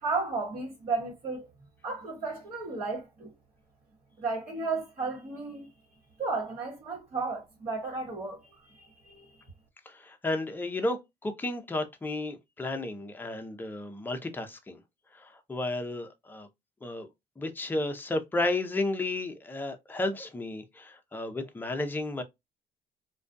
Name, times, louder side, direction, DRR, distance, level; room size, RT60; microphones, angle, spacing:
voice 1, 0.0-1.5 1.8-3.3 4.2-5.7 6.2-9.4, right 3 dB, 50° right, 1.1 m, -34 dB
voice 2, 9.9-14.8 15.1-16.5 16.8-17.1 17.4-22.2, left 2 dB, 10° left, 0.5 m, -33 dB
2.3 x 2.2 x 2.5 m
cardioid pair, 110°, 17 cm